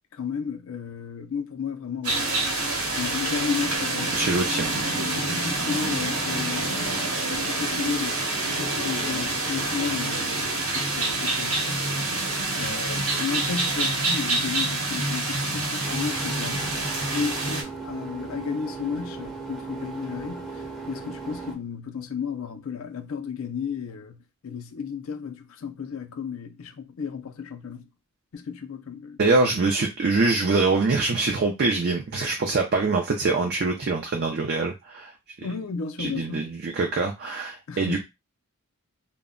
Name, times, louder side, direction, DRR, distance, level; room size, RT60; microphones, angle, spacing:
voice 1, 0.1-4.2 5.0-6.8 7.3-8.2 8.5-11.9 12.5-16.7 17.1-27.9 28.3-29.5 35.4-36.5 37.7-38.0, left 6 dB, 65° left, 0.4 m, -33 dB
sound 1, 2.0-17.6, right 2 dB, 75° right, 0.9 m, -27 dB
voice 2, 4.1-4.9 29.2-35.1 36.0-38.0, right 3 dB, 45° right, 0.4 m, -24 dB
sound 2, 15.8-21.5, right 4 dB, ahead, 0.5 m, -37 dB
2.1 x 2.1 x 3.6 m
head